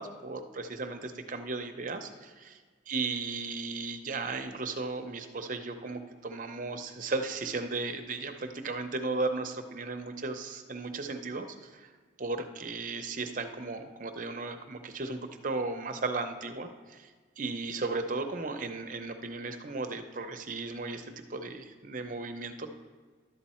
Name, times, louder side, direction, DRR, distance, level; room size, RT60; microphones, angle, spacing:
voice 1, 0.0-2.5 2.9-11.9 12.2-22.7, right 3 dB, 45° right, 6 dB, 0.7 m, -35 dB
11.5 x 7.2 x 4.3 m, 1.5 s
head